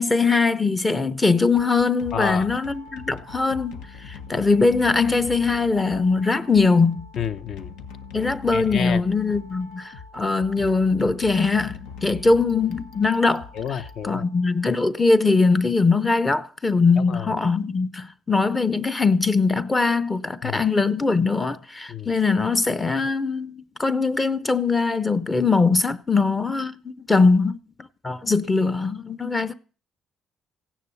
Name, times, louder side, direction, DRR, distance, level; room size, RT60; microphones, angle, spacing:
voice 1, 0.0-7.1 8.1-27.6 28.0-29.5, left 4 dB, 15° left, 0.7 m, -21 dB
sound 1, 1.6-14.6, left 5 dB, 85° left, 1.5 m, -41 dB
voice 2, 2.1-2.5 7.2-7.7 8.5-9.0 13.5-14.3 17.0-17.3 20.4-20.6 21.9-22.1, left 8 dB, 50° left, 0.9 m, -29 dB
16.0 x 10.0 x 7.0 m
cardioid pair, 135°, 0 cm